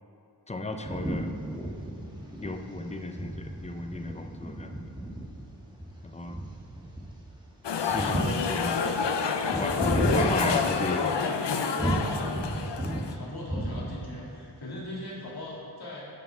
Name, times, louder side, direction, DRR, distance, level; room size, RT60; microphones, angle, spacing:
voice 1, 0.5-1.3 2.4-4.9 6.0-6.4 7.8-9.0 9.5-11.0, left 2 dB, 15° left, 6 dB, 0.6 m, -35 dB
sound 1, 0.8-11.2 11.8-13.1 13.4-14.2, right 1 dB, 10° right, 1.5 m, -33 dB
sound 2, 7.6-13.1, left 5 dB, 75° left, 0.6 m, -28 dB
voice 2, 10.6-12.4 12.8-16.1, left 2 dB, 60° left, -5 dB, 2.1 m, -40 dB
11.5 x 5.5 x 4.4 m, 2.5 s
wide cardioid pair, 75°, 43 cm